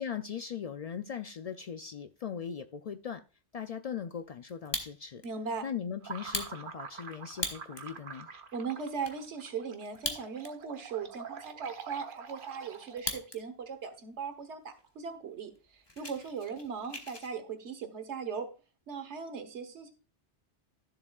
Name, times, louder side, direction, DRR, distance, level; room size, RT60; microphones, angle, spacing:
voice 1, 0.0-3.2 3.5-5.2 5.6-8.3, left 7 dB, 75° left, 0.3 m, -39 dB
Fire, 4.5-5.3 5.7-5.8 6.2-7.9 8.4-8.5 8.7-9.2 9.9-10.7 11.0-11.1 11.6-13.4 13.7-14.2 14.7-14.8 15.1-15.3 15.6-17.3, left 2 dB, 25° left, 1.1 m, -39 dB
voice 2, 5.2-5.7 8.5-18.5 18.9-19.9, right 5 dB, 75° right, 1.4 m, -39 dB
sound 1, 6.0-13.2, right 6 dB, 50° right, 1.0 m, -46 dB
13.0 x 7.2 x 2.3 m
omnidirectional pair, 1.2 m